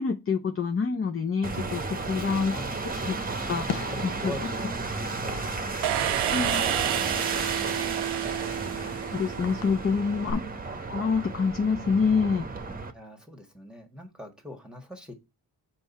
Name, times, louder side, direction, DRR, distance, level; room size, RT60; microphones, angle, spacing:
voice 1, 0.0-2.6 2.9-3.2 3.5-3.9 4.2-4.3 6.3-6.6 9.1-10.4 10.9-12.5, left 5 dB, 35° left, 6 dB, 0.7 m, -27 dB
sound 1, 1.4-12.9, right 3 dB, 20° right, 0.9 m, -33 dB
voice 2, 2.1-3.3 3.7-8.9 10.2-10.6 12.9-15.1, left 1 dB, ahead, 2 dB, 1.4 m, -44 dB
Fireworks, 2.3-10.3, left 8 dB, 90° left, 0.7 m, -43 dB
sound 2, 5.8-9.7, right 13 dB, 80° right, 0.6 m, -30 dB
5.3 x 4.7 x 4.1 m, 0.24 s
cardioid pair, 65°, 40 cm